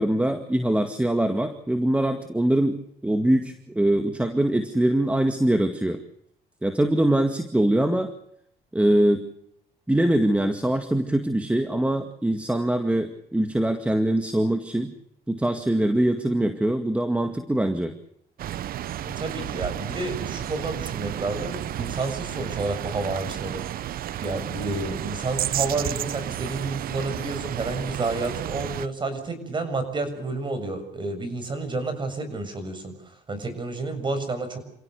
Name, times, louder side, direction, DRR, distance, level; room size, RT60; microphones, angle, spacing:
voice 1, 0.0-6.0 6.6-8.1 8.7-9.3 9.9-14.9 15.3-17.9, right 1 dB, 5° right, 7 dB, 2.1 m, -23 dB
sound 1, 18.4-28.9, right 12 dB, 60° right, 0.9 m, -32 dB
voice 2, 19.2-23.6 24.2-34.6, right 3 dB, 30° right, 9 dB, 7.3 m, -30 dB
29.0 x 17.0 x 6.9 m, 0.71 s
cardioid pair, 110°, 17 cm